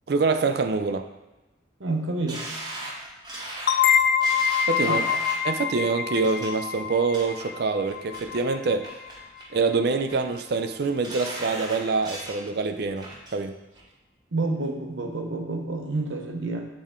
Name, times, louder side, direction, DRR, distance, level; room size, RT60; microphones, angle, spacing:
voice 1, 0.1-1.1 4.7-8.9 9.5-13.6, right 4 dB, 55° right, 8 dB, 0.4 m, -25 dB
voice 2, 1.8-2.5 4.8-5.1 14.3-16.7, right 2 dB, 80° right, 2 dB, 0.9 m, -29 dB
sound 1, 2.3-5.5 6.1-6.5 6.9-7.5 7.9-8.4 8.8-9.5 9.8-10.4 10.8-12.4 12.8-13.4 13.8-13.9, right 1 dB, 20° right, 0.9 m, -38 dB
sound 2, 3.7-9.1, left 8 dB, 55° left, 0.3 m, -25 dB
7.4 x 4.2 x 3.7 m, 1.0 s
head